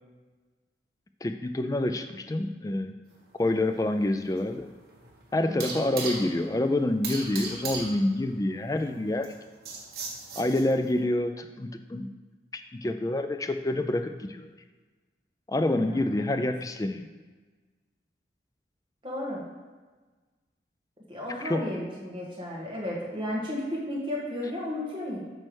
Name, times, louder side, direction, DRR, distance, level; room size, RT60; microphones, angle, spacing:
voice 1, 1.2-2.9 3.4-4.7 5.3-9.3 10.4-12.1 12.5-14.5 15.5-17.1 21.4-21.7, left 1 dB, 20° left, 8 dB, 0.3 m, -27 dB
sound 1, 3.1-11.0, right 4 dB, 60° right, 1.5 m, -39 dB
voice 2, 5.5-5.8 15.8-16.4 19.0-19.4 21.1-25.2, left 1 dB, 30° right, -4 dB, 1.6 m, -34 dB
8.8 x 3.3 x 6.2 m, 1.3 s
head